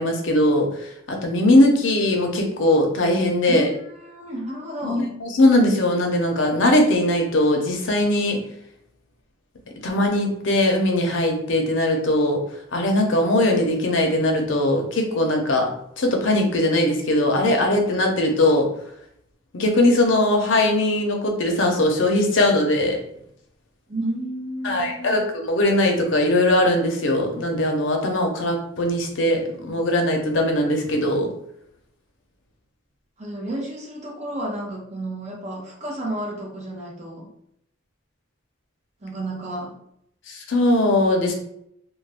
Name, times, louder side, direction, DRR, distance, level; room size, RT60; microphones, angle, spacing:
voice 1, 0.0-3.7 4.8-8.4 9.8-12.4 12.7-15.7 16.0-18.7 19.5-23.0 24.6-31.3 40.3-41.3, left 1 dB, 75° left, 2 dB, 0.6 m, -20 dB
voice 2, 3.5-5.0 23.9-25.2 33.2-37.3 39.0-39.7, right 1 dB, 35° right, -2 dB, 0.7 m, -31 dB
2.4 x 2.2 x 3.3 m, 0.75 s
head